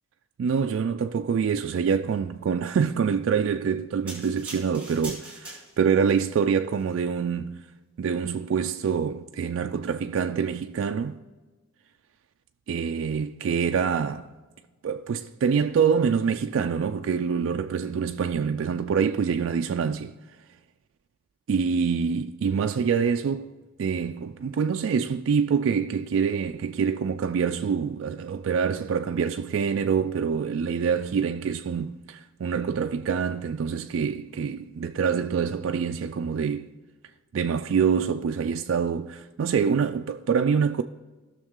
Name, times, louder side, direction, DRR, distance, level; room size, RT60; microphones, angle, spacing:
voice 1, 0.4-7.7 8.0-11.2 12.7-14.3 14.8-20.1 21.5-36.7 37.3-40.8, right 6 dB, 65° right, 0.3 m, -26 dB
sound 1, 4.1-6.0 6.7-6.8, right 2 dB, 5° right, 3.1 m, -41 dB
16.5 x 6.3 x 3.7 m
head